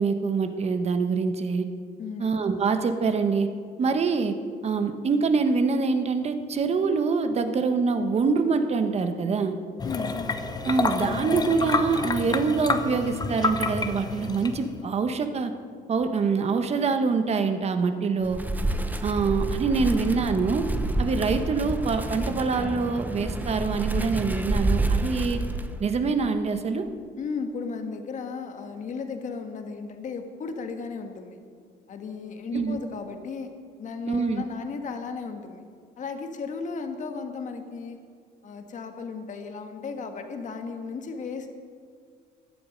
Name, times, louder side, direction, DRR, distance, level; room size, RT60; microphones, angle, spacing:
voice 1, 0.0-1.6 2.2-3.5 3.8-4.3 4.6-9.5 10.6-15.5 15.9-18.4 19.0-20.6 21.0-25.4 25.8-26.8 32.5-32.8 34.1-34.4, right 4 dB, 40° right, 8 dB, 1.2 m, -25 dB
voice 2, 9.8-10.2 19.9-20.1 27.2-31.4 31.9-33.5 33.8-35.6 36.0-38.0 38.4-41.6, left 5 dB, 45° left, 6 dB, 1.5 m, -35 dB
sound 1, 9.8-14.8, left 3 dB, 25° left, 0.9 m, -29 dB
Wind, 18.2-26.0, right 2 dB, 10° right, 0.8 m, -28 dB
16.0 x 11.0 x 5.3 m, 2.1 s
cardioid pair, 110°, 17 cm